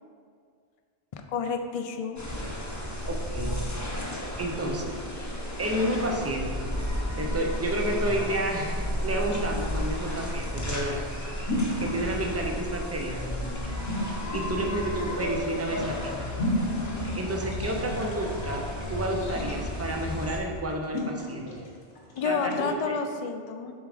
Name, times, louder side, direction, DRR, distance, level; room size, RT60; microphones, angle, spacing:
voice 1, 1.1-2.2 22.1-23.7, left 5 dB, 60° left, 6 dB, 0.4 m, -30 dB
sound 1, 2.2-20.4, left 1 dB, 20° left, 0.7 m, -33 dB
voice 2, 3.1-3.6 4.4-5.0 5.6-6.6 7.2-11.0 11.8-13.3 14.3-16.2 17.1-21.5 22.2-22.9, right 1 dB, 20° right, 1 dB, 0.4 m, -30 dB
sound 2, 8.0-22.7, left 1 dB, 85° left, 1.4 m, -36 dB
7.0 x 3.7 x 4.8 m, 2.1 s
omnidirectional pair, 1.2 m